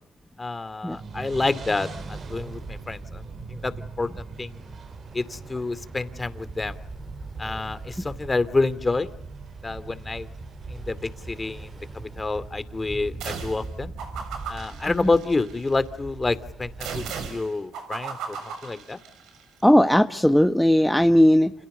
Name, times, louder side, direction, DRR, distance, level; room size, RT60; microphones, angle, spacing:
voice 1, 0.4-3.2 3.5-4.1 4.4-4.6 5.1-6.8 7.4-9.1 9.6-10.3 10.7-11.0 11.3-13.9 14.5-19.0, left 3 dB, 25° left, 13 dB, 2.6 m, -28 dB
sound 1, 0.9-12.0, right 4 dB, 55° right, 5.4 m, -42 dB
Ocean, 1.7-17.1, right 3 dB, 35° right, 5.8 m, -41 dB
sound 2, 13.2-13.7 14.0-15.7 16.8-19.4, right 6 dB, 85° right, 6.6 m, -36 dB
voice 2, 19.6-21.5, equal, 5° left, 7 dB, 1.2 m, -17 dB
29.5 x 28.5 x 6.8 m, 0.75 s
cardioid pair, 90°, 0 cm